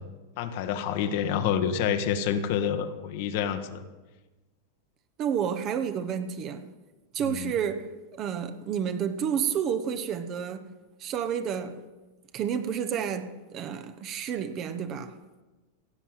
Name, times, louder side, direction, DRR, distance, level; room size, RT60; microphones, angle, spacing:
voice 1, 0.4-3.8 7.2-7.5, left 8 dB, 50° left, 1.3 m, -28 dB
voice 2, 5.2-6.7 7.1-10.7 11.0-11.8 12.3-15.2, right 8 dB, 35° right, 1.2 m, -30 dB
16.0 x 7.2 x 9.0 m
figure-of-eight pair, 90°, 0 cm